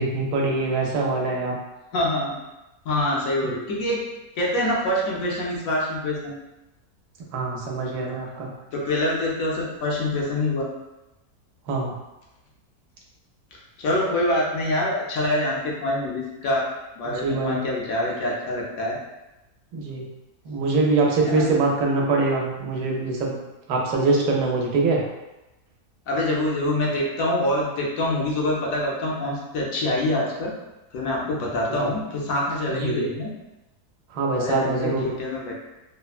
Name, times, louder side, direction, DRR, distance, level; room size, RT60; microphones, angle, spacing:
voice 1, 0.0-1.5 7.3-8.5 11.7-11.9 17.0-17.6 19.7-20.0 20.5-23.4 23.7-25.0 32.7-33.1 34.1-35.0, right 3 dB, 85° right, -1 dB, 1.2 m, -23 dB
voice 2, 1.9-2.4 2.8-4.0 4.4-6.4 8.7-10.7 13.8-16.7 17.0-19.0 21.3-21.5 26.1-30.5 30.9-33.3 34.3-35.5, left 1 dB, 70° left, -3 dB, 1.0 m, -25 dB
3.3 x 2.0 x 2.3 m, 0.98 s
omnidirectional pair, 1.6 m